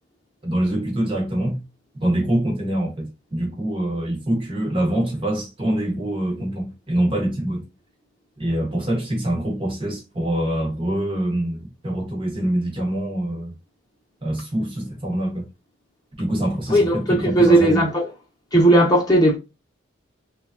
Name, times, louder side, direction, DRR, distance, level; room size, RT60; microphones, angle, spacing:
voice 1, 0.4-1.6 1.9-7.7 8.4-13.5 14.2-15.5 16.2-17.8, right 1 dB, 25° right, 0.7 m, -24 dB
voice 2, 16.7-18.1 18.5-19.4, right 1 dB, 20° left, 0.8 m, -16 dB
3.1 x 2.3 x 2.3 m
head